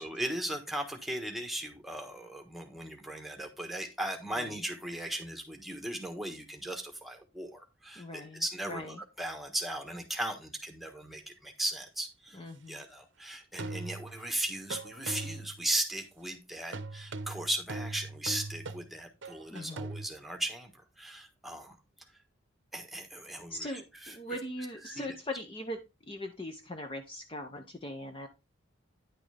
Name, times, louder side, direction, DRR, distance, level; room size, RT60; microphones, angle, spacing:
voice 1, 0.0-12.4 12.7-21.8 22.7-24.2 24.8-25.1, right 1 dB, ahead, 5 dB, 1.3 m, -37 dB
voice 2, 8.0-8.4 8.7-9.0 12.3-12.8 19.5-19.9 23.5-28.3, left 1 dB, 25° left, 5 dB, 0.7 m, -40 dB
sound 1, 11.8-11.9 13.6-14.3 14.7-15.6 16.7-20.1, right 3 dB, 65° right, 0.7 m, -40 dB
10.0 x 6.0 x 3.4 m, 0.26 s
head